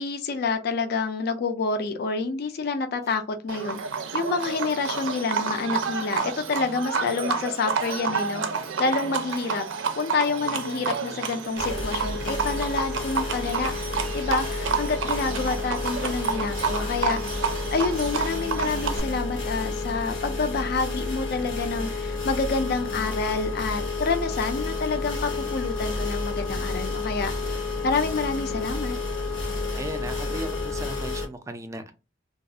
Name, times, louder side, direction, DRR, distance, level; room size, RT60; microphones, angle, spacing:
voice 1, 0.0-3.8 4.1-8.4 8.8-9.6 9.9-13.7 14.1-17.2 17.7-29.0, left 4 dB, 55° left, 7 dB, 0.4 m, -28 dB
Livestock farm animals working animals, 3.5-19.0, right 5 dB, 80° right, 0.4 m, -30 dB
sound 1, 11.6-31.3, left 3 dB, 85° left, 0.9 m, -30 dB
voice 2, 29.7-31.9, right 1 dB, 15° right, 7 dB, 0.3 m, -36 dB
2.4 x 2.3 x 2.7 m, 0.30 s
head